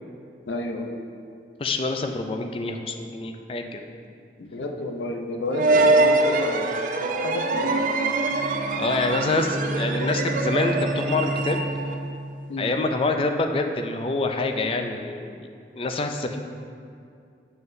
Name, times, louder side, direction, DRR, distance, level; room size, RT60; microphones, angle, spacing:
voice 1, 0.5-0.9 4.4-6.7 7.0-8.1 12.5-12.7, left 2 dB, 85° left, 3 dB, 0.6 m, -31 dB
voice 2, 1.6-3.8 8.7-11.7 12.6-15.4 15.8-16.4, left 3 dB, 30° left, 5 dB, 0.3 m, -26 dB
sound 1, 5.5-12.0, right 2 dB, 45° right, 0.3 m, -24 dB
Bowed string instrument, 8.2-12.3, right 1 dB, 70° right, 1.0 m, -31 dB
7.7 x 5.6 x 2.6 m, 2.4 s
head